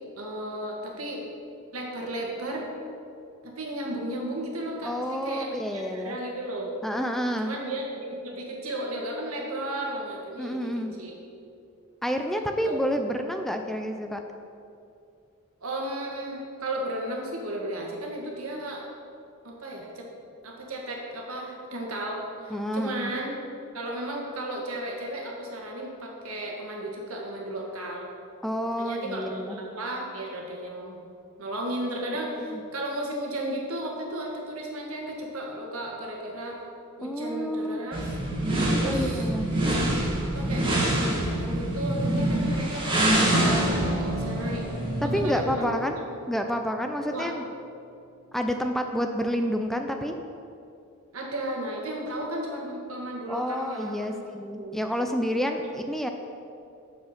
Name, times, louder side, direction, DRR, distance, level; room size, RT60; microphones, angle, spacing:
voice 1, 0.2-1.2 1.7-2.7 3.4-6.8 7.4-10.7 11.0-11.2 12.6-12.8 15.6-18.9 19.4-20.1 20.4-23.4 23.7-28.1 28.8-31.0 31.4-36.6 37.0-38.0 38.7-39.3 39.7-39.8 40.2-44.7 45.0-45.8 47.0-47.3 51.1-54.2 54.6-54.8, right 1 dB, 75° right, 0 dB, 1.7 m, -34 dB
voice 2, 4.8-6.2 6.8-7.6 10.4-10.9 12.0-14.2 22.5-23.1 28.4-29.6 32.4-32.6 37.0-37.8 38.8-39.5 45.0-46.0 46.3-47.4 48.3-50.1 53.3-56.1, equal, ahead, 5 dB, 0.4 m, -29 dB
sound 1, 37.9-45.5, right 1 dB, 25° right, 2.0 m, -26 dB
sound 2, 43.3-47.1, equal, 65° left, 1.6 m, -35 dB
7.6 x 7.1 x 5.8 m, 2.5 s
head